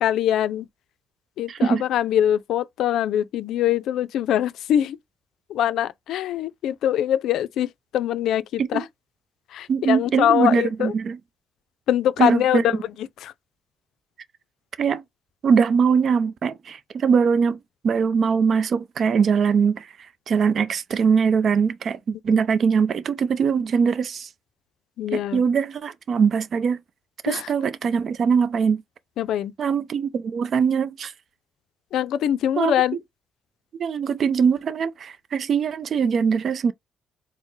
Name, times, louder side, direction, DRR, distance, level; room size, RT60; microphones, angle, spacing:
voice 1, 0.0-0.7 1.4-5.0 5.5-8.8 9.5-10.9 11.9-13.3 22.3-22.4 25.0-25.4 27.3-27.5 29.2-29.5 31.9-33.0, left 11 dB, 80° left, 0.4 m, -23 dB
voice 2, 1.5-1.8 8.6-8.8 9.7-11.2 12.2-12.6 14.8-15.0 15.4-17.6 17.8-19.9 20.3-24.3 25.1-26.8 27.2-28.8 29.6-31.1 32.6-32.7 33.8-36.7, right 6 dB, 55° right, 0.4 m, -21 dB
4.3 x 2.0 x 3.1 m
cardioid pair, 90°, 0 cm